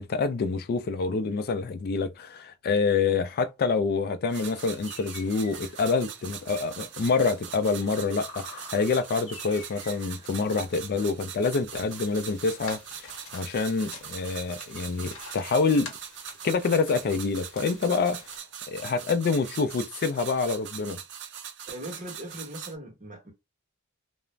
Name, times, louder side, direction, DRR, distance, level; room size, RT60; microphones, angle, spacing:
voice 1, 0.0-15.9 16.4-18.2 18.7-21.0, left 4 dB, 50° left, 0.3 m, -27 dB
sound 1, 4.3-11.0, left 2 dB, 30° left, 0.9 m, -49 dB
sound 2, 4.3-22.7, right 8 dB, 60° right, 0.5 m, -41 dB
sound 3, 11.9-18.4, left 4 dB, 90° left, 0.9 m, -47 dB
voice 2, 21.7-23.3, right 1 dB, 40° right, 1.0 m, -40 dB
2.4 x 2.0 x 3.1 m
head